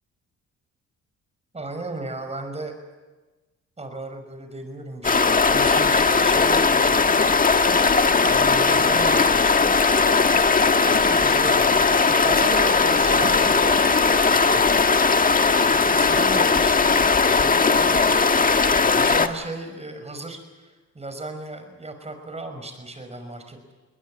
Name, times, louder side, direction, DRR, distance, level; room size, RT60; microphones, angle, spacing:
voice 1, 1.5-2.7 3.8-7.1 8.2-9.9 10.8-14.3 15.1-16.9 17.3-18.0 18.9-20.4 20.6-23.7, right 2 dB, 20° right, 6 dB, 5.6 m, -35 dB
sound 1, 5.0-19.3, left 4 dB, 30° left, 1.5 m, -18 dB
20.5 x 20.5 x 9.9 m, 1.2 s
cardioid pair, 90°, 30 cm